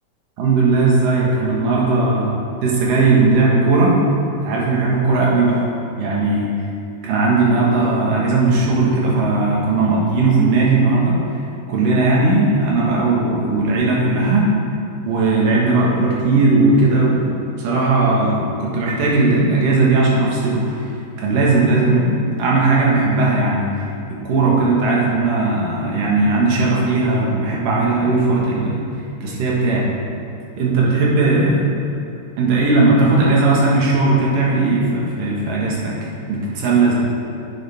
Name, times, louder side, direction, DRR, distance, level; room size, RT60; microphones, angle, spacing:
voice 1, 0.4-4.0 4.4-5.6 6.0-6.5 7.0-11.2 11.7-14.5 15.1-17.3 17.6-20.9 21.2-23.7 24.2-28.8 29.2-29.9 30.6-31.7 32.4-35.9 36.3-36.9, right 3 dB, 60° right, -4 dB, 2.7 m, -17 dB
10.5 x 9.5 x 3.6 m, 2.6 s
omnidirectional pair, 5.3 m